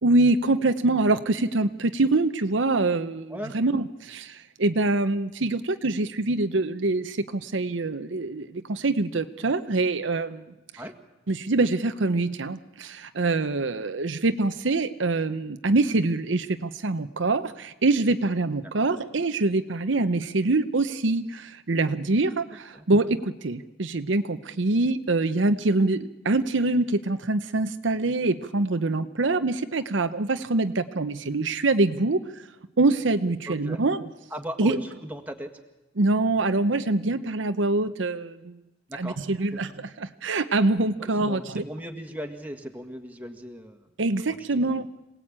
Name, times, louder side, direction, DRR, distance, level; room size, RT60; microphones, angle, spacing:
voice 1, 0.0-10.5 11.3-32.4 32.8-34.0 34.6-34.8 36.0-38.6 38.9-41.6 44.0-44.9, right 2 dB, 75° right, 9 dB, 0.8 m, -25 dB
voice 2, 33.5-33.8 34.3-34.7 35.0-35.5 38.9-39.6 41.0-43.9 44.2-44.4, equal, 10° right, 4 dB, 1.8 m, -37 dB
26.5 x 18.0 x 8.8 m, 1.0 s
head